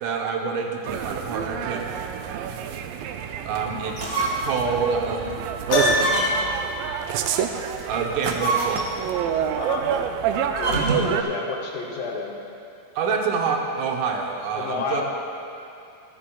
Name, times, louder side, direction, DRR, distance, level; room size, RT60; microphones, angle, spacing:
voice 1, 0.0-1.9 3.4-5.4 7.9-8.9 13.0-15.0, right 5 dB, 75° right, 1 dB, 2.2 m, -27 dB
sound 1, 0.8-11.2, right 8 dB, 90° right, 2.3 m, -28 dB
sound 2, 3.9-4.6 5.0-5.1 5.9-6.6 8.1-9.1 10.5-11.2, right 3 dB, 50° right, 0.8 m, -27 dB
Piano, 5.7-6.5, equal, 45° left, 2.7 m, -21 dB
voice 2, 9.6-9.9 10.6-12.3 14.5-15.0, left 4 dB, 80° left, -1 dB, 2.8 m, -30 dB
25.0 x 8.5 x 2.3 m, 2.7 s
omnidirectional pair, 3.9 m